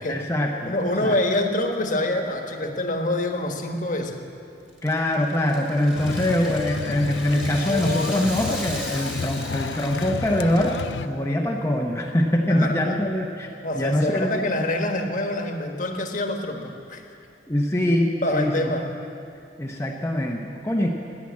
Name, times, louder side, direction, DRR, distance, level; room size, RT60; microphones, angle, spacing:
voice 1, 0.0-0.7 1.0-1.2 4.8-10.8 11.0-13.5 13.8-14.4 17.5-18.7 19.6-20.9, left 1 dB, 15° left, 0 dB, 0.8 m, -23 dB
voice 2, 0.7-4.2 12.5-13.0 13.6-17.1 18.2-18.9, left 1 dB, 45° left, 4 dB, 1.3 m, -26 dB
Rattle (instrument), 4.7-10.9, equal, 5° right, 1.8 m, -38 dB
sound 1, 5.9-11.1, left 5 dB, 70° left, 0.4 m, -31 dB
16.5 x 9.9 x 8.5 m, 2.6 s
head